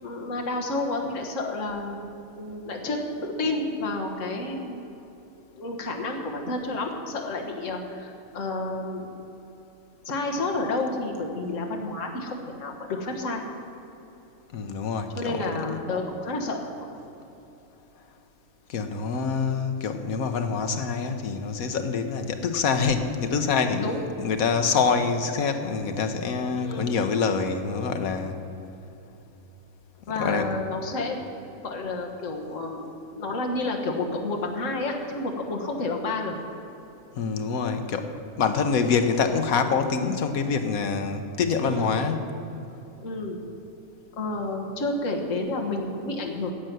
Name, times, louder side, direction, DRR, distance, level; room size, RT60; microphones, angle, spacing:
voice 1, 0.0-2.0 2.4-4.9 5.6-9.1 10.0-13.4 15.2-17.0 23.8-24.0 26.6-27.0 30.1-31.2 31.6-36.4 41.6-42.0 43.0-43.4 44.2-46.5, left 2 dB, 60° left, 1 dB, 1.7 m, -30 dB
voice 2, 14.5-15.8 18.7-23.9 24.2-28.4 30.1-30.5 37.2-38.1 38.4-42.4, left 5 dB, 75° left, 7 dB, 1.4 m, -26 dB
11.0 x 7.6 x 9.3 m, 3.0 s
omnidirectional pair, 1.5 m